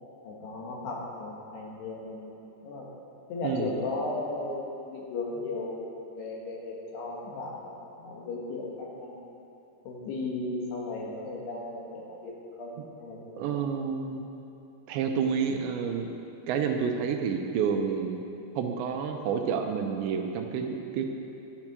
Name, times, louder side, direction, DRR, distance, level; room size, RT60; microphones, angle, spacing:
voice 1, 0.2-2.4 2.6-2.9 3.3-9.2 9.9-12.7 13.0-13.6, left 2 dB, 70° left, -3 dB, 3.6 m, -36 dB
voice 2, 3.4-3.7 13.4-14.3 14.9-16.1 16.5-18.2 18.6-21.1, right 6 dB, 80° right, 4 dB, 3.0 m, -29 dB
12.5 x 10.5 x 6.0 m, 2.9 s
omnidirectional pair, 5.3 m